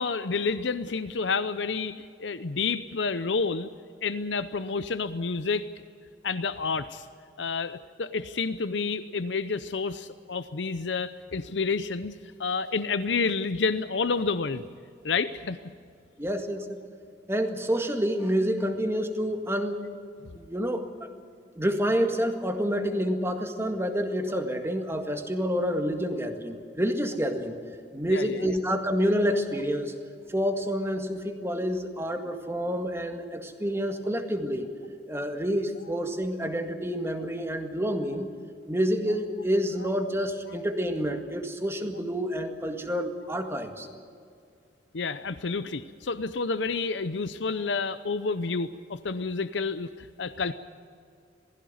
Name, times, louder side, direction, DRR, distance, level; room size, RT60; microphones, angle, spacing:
voice 1, 0.0-3.7 4.0-5.7 6.2-7.1 7.4-12.1 12.4-14.6 15.0-15.6 28.1-28.5 44.9-50.5, left 4 dB, 85° left, 13 dB, 0.7 m, -29 dB
voice 2, 16.2-16.8 17.3-19.9 20.4-20.9 21.6-27.5 27.9-29.9 30.3-34.7 35.1-38.3 38.7-43.9, equal, 15° right, 5 dB, 1.8 m, -28 dB
20.5 x 16.0 x 9.5 m, 2.3 s
head